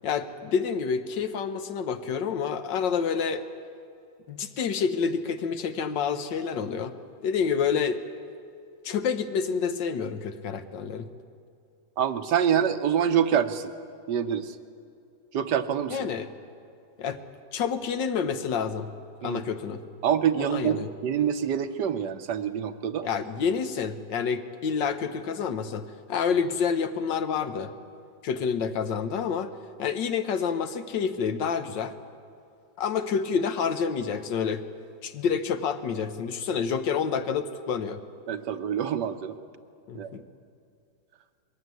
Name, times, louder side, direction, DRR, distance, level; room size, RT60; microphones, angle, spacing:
voice 1, 0.0-3.4 4.3-6.9 7.2-8.0 8.8-11.1 15.9-16.3 17.0-17.2 17.5-18.9 19.2-19.8 20.4-20.9 23.0-25.8 26.1-27.7 28.2-29.5 29.8-31.9 32.8-34.6 35.0-38.0 39.9-40.2, left 6 dB, 70° left, 9 dB, 1.6 m, -28 dB
voice 2, 12.0-13.7 14.1-14.5 15.3-16.0 19.2-19.4 20.0-23.1 38.3-39.3 39.9-40.1, right 8 dB, 65° right, 10 dB, 1.4 m, -26 dB
22.0 x 15.5 x 9.5 m, 2.5 s
omnidirectional pair, 2.1 m